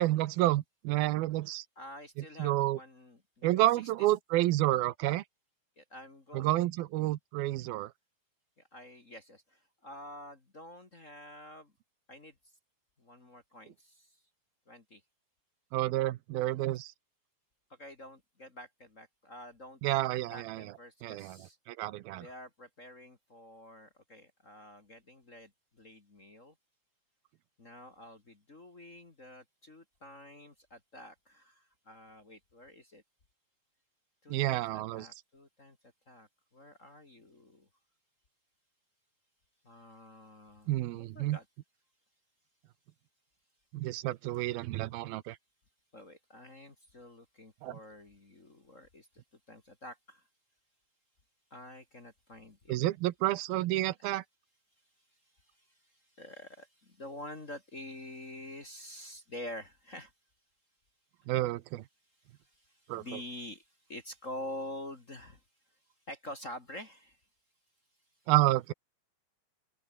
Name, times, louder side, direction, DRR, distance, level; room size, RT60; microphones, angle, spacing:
voice 1, 0.0-1.6 2.4-2.8 3.4-5.2 6.3-7.9 15.7-16.9 19.8-20.7 21.0-21.4 21.7-22.3 34.3-35.1 40.7-41.4 43.7-45.4 47.6-47.8 52.7-54.2 61.3-61.8 62.9-63.0 68.3-68.7, right 16 dB, 90° right, 2.8 m, -29 dB
voice 2, 1.8-3.9 5.8-6.7 8.6-11.7 12.1-12.3 13.0-14.2 14.7-15.0 17.7-19.8 20.3-21.6 22.2-26.5 27.6-33.0 34.2-35.8 36.1-37.7 39.6-41.5 45.9-49.2 49.5-50.3 51.5-52.8 54.0-54.1 55.3-60.1 62.4-65.4 66.1-67.2, left 1 dB, 25° left, 2.0 m, -48 dB
open air
omnidirectional pair, 4.2 m